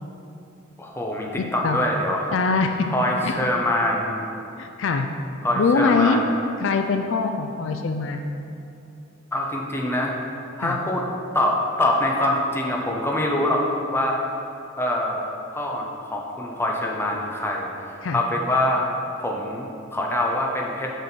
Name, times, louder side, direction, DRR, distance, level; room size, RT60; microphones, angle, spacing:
voice 1, 0.8-2.3 2.9-4.2 5.4-6.3 9.3-10.2 10.6-11.0 11.3-13.6 13.9-14.2 14.8-15.3 15.5-18.8 19.2-21.0, left 1 dB, 10° left, -1 dB, 0.8 m, -24 dB
voice 2, 2.3-2.9 3.2-3.3 4.6-5.1 5.6-6.2 6.6-8.3 10.6-10.8 18.0-18.2, left 4 dB, 70° left, 5 dB, 0.4 m, -22 dB
6.7 x 6.3 x 4.4 m, 2.7 s
head